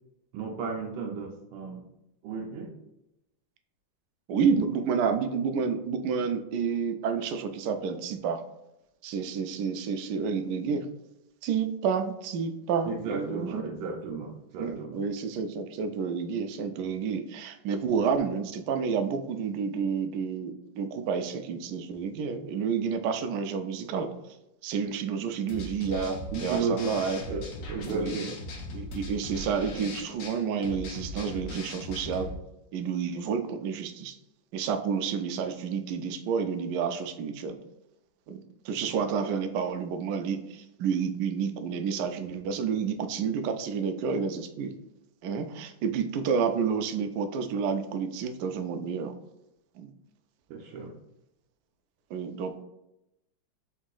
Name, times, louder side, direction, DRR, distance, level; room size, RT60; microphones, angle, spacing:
voice 1, 0.3-1.8 2.2-2.7 12.9-15.0 26.3-28.4 50.5-50.9, right 4 dB, 90° right, 0 dB, 1.4 m, -34 dB
voice 2, 4.3-8.4 9.0-10.9 11.4-13.6 14.6-24.1 24.6-27.2 27.9-28.1 28.7-32.3 32.7-34.1 34.5-37.6 38.3-44.7 45.2-49.1 49.8-49.9 52.1-52.6, right 6 dB, 75° right, 7 dB, 1.0 m, -30 dB
sound 1, 25.5-32.3, left 1 dB, 60° left, 0.9 m, -39 dB
4.0 x 2.7 x 3.7 m, 0.88 s
omnidirectional pair, 2.1 m